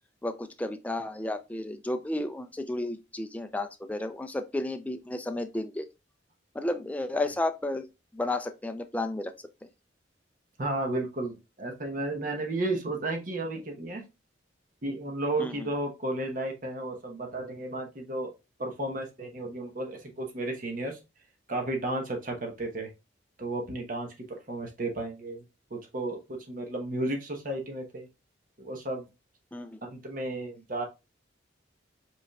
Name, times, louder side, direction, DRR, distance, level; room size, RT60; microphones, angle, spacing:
voice 1, 0.2-5.9 6.5-7.9 8.1-9.3 15.4-15.7 29.5-29.8, left 2 dB, 10° left, 0.3 m, -32 dB
voice 2, 10.6-14.1 14.8-18.3 18.6-21.0 21.5-22.9 23.4-25.4 25.7-28.1 28.6-29.1 29.8-30.9, right 2 dB, 45° right, 0.9 m, -33 dB
5.2 x 3.5 x 2.3 m
head